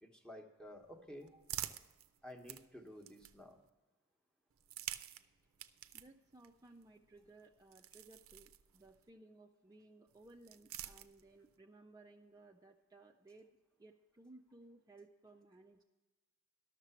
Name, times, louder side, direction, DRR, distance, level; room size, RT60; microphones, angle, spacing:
voice 1, 0.0-1.3 2.2-3.6, equal, 5° left, 3 dB, 1.0 m, -52 dB
sound 1, 0.6-3.7 4.5-9.1 10.1-11.6, right 12 dB, 75° right, 0.5 m, -50 dB
voice 2, 5.9-13.5 13.8-15.8, right 2 dB, 15° right, 2 dB, 0.4 m, -60 dB
12.0 x 6.6 x 6.9 m, 1.2 s
head